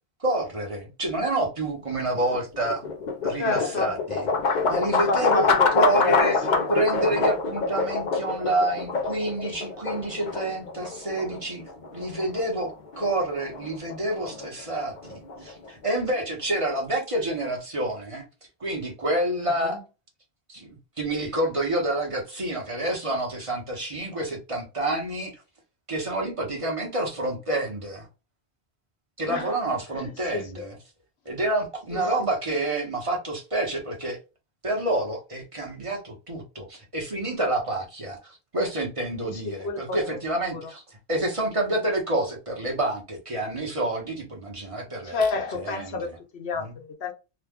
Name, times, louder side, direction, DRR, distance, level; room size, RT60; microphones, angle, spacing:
voice 1, 0.2-2.8 3.2-5.5 5.8-6.4 6.7-11.6 11.9-18.3 18.6-19.8 20.5-25.4 25.9-28.1 29.2-30.8 31.2-34.2 34.6-45.2 45.5-46.1 46.6-46.7, right 1 dB, 35° right, 0.9 m, -28 dB
sound 1, 1.9-16.0, left 4 dB, 55° left, 0.7 m, -27 dB
voice 2, 3.4-3.9 4.8-6.6 19.7-19.8 29.3-29.5 29.9-30.5 31.9-32.3 39.2-40.0 40.5-40.6 45.0-47.1, left 4 dB, 90° left, 1.1 m, -30 dB
2.9 x 2.3 x 3.5 m
omnidirectional pair, 1.0 m